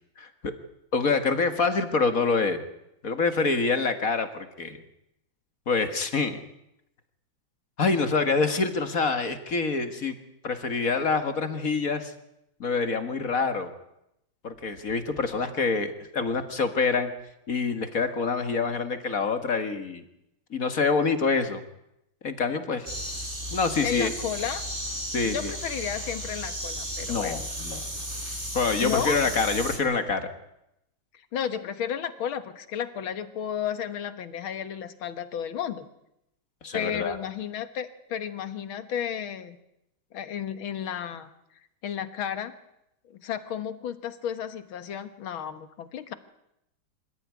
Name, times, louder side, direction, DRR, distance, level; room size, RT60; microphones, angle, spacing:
voice 1, 0.2-0.5 0.9-2.6 3.0-4.8 5.7-6.4 7.8-10.2 10.4-12.1 12.6-13.7 14.4-17.1 17.5-20.0 20.5-21.6 22.2-22.9 23.5-24.1 25.1-25.5 27.1-27.8 28.5-30.3 36.6-37.2, left 4 dB, 45° left, 8 dB, 2.0 m, -26 dB
sound 1, 22.9-29.8, equal, 25° right, 4.5 m, -34 dB
voice 2, 23.8-24.7 25.2-27.4 28.8-29.2 31.3-35.9 36.7-39.6 40.1-41.3 41.8-42.5 43.1-46.1, left 9 dB, 85° left, 11 dB, 2.2 m, -32 dB
26.0 x 14.5 x 9.5 m, 0.84 s
omnidirectional pair, 2.2 m